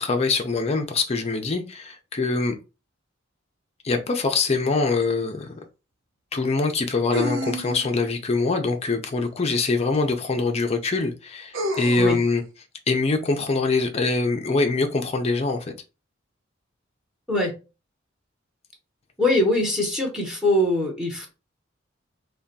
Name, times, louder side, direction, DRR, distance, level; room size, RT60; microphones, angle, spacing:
voice 1, 0.0-2.5 3.8-5.6 6.3-12.4 12.9-15.7, left 3 dB, 35° left, 0.5 m, -24 dB
sound 1, 5.0-5.1 7.1-8.1 9.9-10.0 11.5-12.3, equal, 90° right, 0.8 m, -29 dB
voice 2, 19.2-21.3, left 1 dB, 5° right, 0.8 m, -22 dB
3.4 x 2.2 x 4.0 m
head